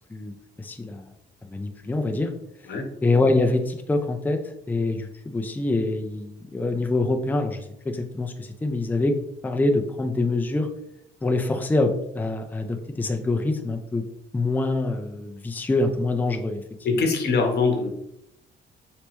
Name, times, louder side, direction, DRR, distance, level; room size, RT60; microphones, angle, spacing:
voice 1, 0.6-1.1 1.5-2.3 3.0-4.4 4.7-9.2 9.4-10.7 11.2-14.0 14.3-16.6, left 2 dB, 10° left, 5 dB, 0.4 m, -25 dB
voice 2, 16.8-17.9, left 4 dB, 55° left, 2 dB, 0.9 m, -22 dB
3.3 x 3.0 x 3.0 m, 0.77 s
cardioid pair, 90°, 20 cm